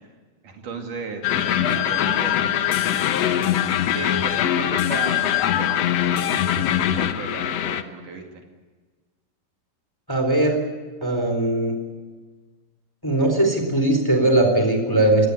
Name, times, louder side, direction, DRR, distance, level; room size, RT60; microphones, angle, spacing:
voice 1, 0.4-8.4, right 4 dB, 65° right, 3 dB, 3.8 m, -35 dB
sound 1, 1.2-7.8, left 10 dB, 65° left, 1.7 m, -22 dB
voice 2, 10.1-10.6 11.0-11.7 13.0-15.3, right 1 dB, 5° left, 4 dB, 3.5 m, -19 dB
23.5 x 18.5 x 9.8 m, 1.4 s
omnidirectional pair, 4.0 m